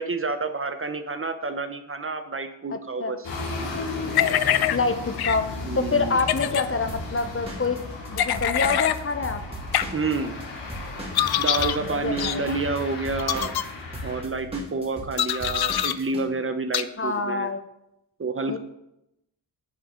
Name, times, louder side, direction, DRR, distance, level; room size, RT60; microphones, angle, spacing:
voice 1, 0.0-3.3 5.7-6.2 9.9-10.3 11.4-13.5 14.0-17.5 18.2-18.6, right 3 dB, 30° right, 9 dB, 0.7 m, -29 dB
voice 2, 2.7-3.1 4.7-7.8 8.1-9.4 11.9-12.6 17.0-17.6 18.5-18.6, left 4 dB, 30° left, 9 dB, 0.7 m, -26 dB
sound 1, 3.2-14.2, left 3 dB, 85° left, 2.5 m, -35 dB
sound 2, 4.1-4.8 5.2-5.4 6.2-6.7 8.2-9.0 9.7-9.9 11.1-11.8 12.2-12.4 13.2-13.6 15.2-15.9 16.7-16.8, left 11 dB, 60° left, 0.6 m, -24 dB
Drum kit / Drum, 6.9-10.4 10.7-16.2, right 1 dB, 15° right, 2.6 m, -38 dB
9.6 x 8.2 x 3.7 m, 0.86 s
cardioid pair, 95°, 43 cm